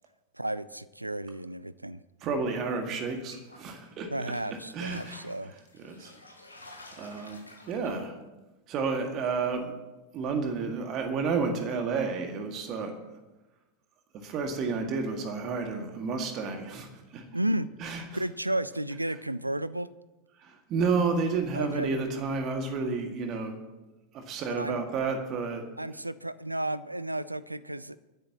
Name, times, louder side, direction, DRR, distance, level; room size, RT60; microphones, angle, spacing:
voice 1, 0.4-2.0 4.1-5.5 17.3-17.7 18.1-19.9 21.5-21.9 24.5-24.8 25.8-28.0, right 1 dB, 85° right, 17 dB, 0.4 m, -33 dB
voice 2, 2.2-4.1 4.7-5.2 5.8-6.2 7.0-8.2 8.7-9.7 10.1-12.9 14.1-17.3 17.8-18.2 20.4-23.6 24.1-25.6, right 4 dB, 35° right, 4 dB, 2.1 m, -31 dB
sound 1, 2.8-3.9 4.2-8.0, left 2 dB, 85° left, 1.7 m, -51 dB
25.0 x 10.5 x 3.0 m, 1.1 s
figure-of-eight pair, 90°, 0 cm